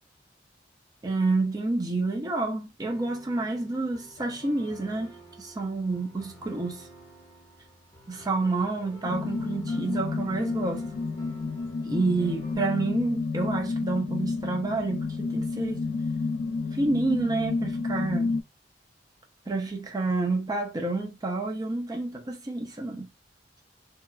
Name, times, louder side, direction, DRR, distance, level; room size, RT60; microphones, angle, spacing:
voice 1, 1.0-6.9 8.1-10.8 11.8-15.9 16.7-18.4 19.5-23.1, right 3 dB, 20° right, 0.4 m, -29 dB
sound 1, 2.8-12.6, right 1 dB, 25° left, 1.1 m, -50 dB
sound 2, 9.0-18.4, left 3 dB, 80° left, 0.4 m, -30 dB
2.7 x 2.2 x 2.3 m
head